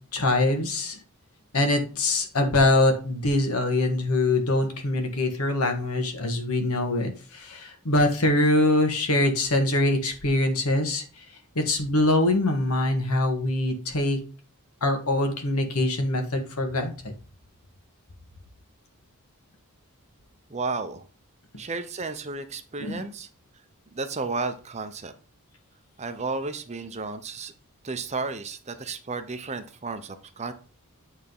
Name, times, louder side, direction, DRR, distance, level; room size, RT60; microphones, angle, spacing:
voice 1, 0.1-1.0 1.5-11.0 11.5-14.2 14.8-17.1 22.8-23.0, left 2 dB, 75° left, 5 dB, 1.6 m, -23 dB
voice 2, 20.5-21.1 21.6-23.3 23.9-25.1 26.0-27.5 27.8-30.5, right 3 dB, 30° right, 10 dB, 0.7 m, -33 dB
8.6 x 3.6 x 5.4 m, 0.37 s
head